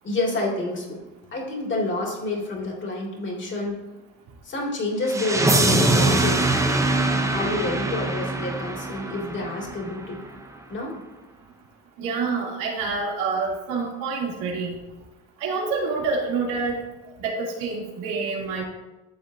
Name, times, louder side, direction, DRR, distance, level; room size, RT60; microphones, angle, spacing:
voice 1, 0.0-1.0 1.3-3.8 4.4-6.4 7.3-10.2 10.7-10.9, left 2 dB, 30° left, -2 dB, 2.4 m, -28 dB
sound 1, 5.1-10.0, right 2 dB, 10° right, 0.6 m, -23 dB
voice 2, 12.0-14.7 15.4-16.8 17.2-18.6, right 4 dB, 85° right, -3 dB, 2.9 m, -27 dB
13.0 x 7.5 x 2.7 m, 1.1 s
cardioid pair, 150°, 41 cm